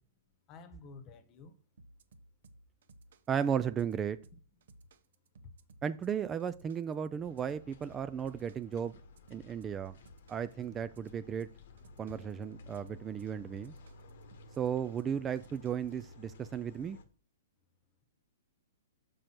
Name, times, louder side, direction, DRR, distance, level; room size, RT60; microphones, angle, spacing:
voice 1, 0.5-1.5, left 4 dB, 35° left, 1.0 m, -51 dB
sound 1, 1.8-16.0, right 2 dB, 75° right, 0.7 m, -58 dB
voice 2, 3.3-4.2 5.8-8.9 9.3-10.0 10.3-11.5 12.0-13.7 14.6-17.0, right 8 dB, 20° right, 0.3 m, -35 dB
sound 2, 7.2-17.0, left 3 dB, 65° left, 0.9 m, -55 dB
6.1 x 5.1 x 4.4 m
hypercardioid pair, 135°, 0 cm